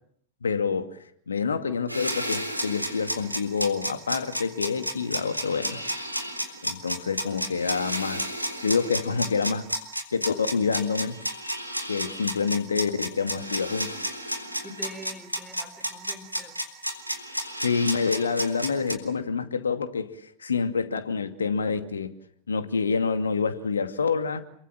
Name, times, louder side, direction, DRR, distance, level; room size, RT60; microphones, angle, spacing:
voice 1, 0.4-1.0 1.3-5.8 6.6-8.2 8.6-9.7 10.1-11.2 11.9-14.0 17.6-22.1 22.5-24.4, left 5 dB, 70° left, 2.4 m, -27 dB
sound 1, 1.9-18.9, equal, 90° right, 3.7 m, -31 dB
voice 2, 14.6-16.6, right 1 dB, 5° right, 5.3 m, -43 dB
29.5 x 23.0 x 7.5 m
figure-of-eight pair, 90°, 0 cm